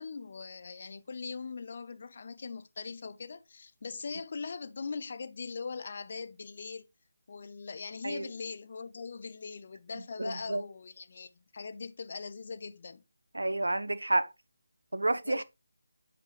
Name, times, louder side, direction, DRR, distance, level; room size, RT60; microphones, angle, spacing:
voice 1, 0.0-6.9 7.3-13.0 15.2-15.4, left 4 dB, 45° left, 0.6 m, -41 dB
voice 2, 10.2-10.6 13.3-14.3 14.9-15.4, right 2 dB, 75° right, 0.6 m, -30 dB
7.6 x 4.5 x 3.3 m
figure-of-eight pair, 155°, 0 cm